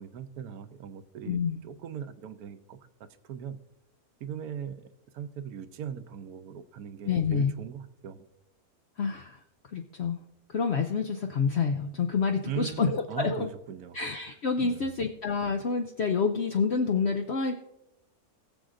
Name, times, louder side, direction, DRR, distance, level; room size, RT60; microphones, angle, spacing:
voice 1, 0.0-3.6 4.2-8.3 12.4-14.0 14.6-15.0, right 8 dB, 85° right, 11 dB, 1.2 m, -39 dB
voice 2, 1.3-1.6 7.1-7.5 9.0-9.4 9.7-10.2 10.5-13.4 13.9-17.5, left 5 dB, 60° left, 5 dB, 0.7 m, -28 dB
21.0 x 7.0 x 2.5 m, 0.87 s
omnidirectional pair, 1.6 m